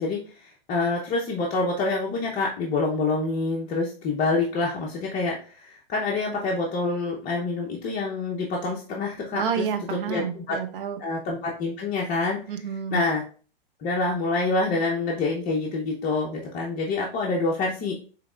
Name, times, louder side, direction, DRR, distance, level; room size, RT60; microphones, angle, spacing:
voice 1, 0.0-9.6 10.1-10.6 11.0-12.4 12.9-13.2 13.8-17.9, left 3 dB, 25° left, -2 dB, 0.7 m, -27 dB
voice 2, 9.3-11.0 12.5-13.0, right 7 dB, 60° right, 6 dB, 0.9 m, -29 dB
5.0 x 3.1 x 2.4 m, 0.39 s
hypercardioid pair, 125°, 30 cm